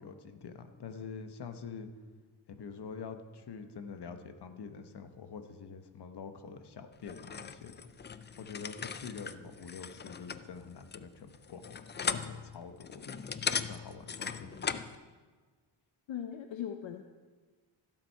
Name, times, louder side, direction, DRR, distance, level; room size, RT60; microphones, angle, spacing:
voice 1, 0.0-1.9 2.5-7.8 8.4-13.2 13.5-14.8, left 5 dB, 55° left, 8 dB, 1.1 m, -46 dB
sound 1, 7.0-14.9, left 6 dB, 25° left, 0.4 m, -39 dB
voice 2, 16.1-17.0, left 9 dB, 70° left, 6 dB, 0.7 m, -39 dB
16.0 x 7.5 x 4.6 m, 1.4 s
cardioid pair, 95°, 47 cm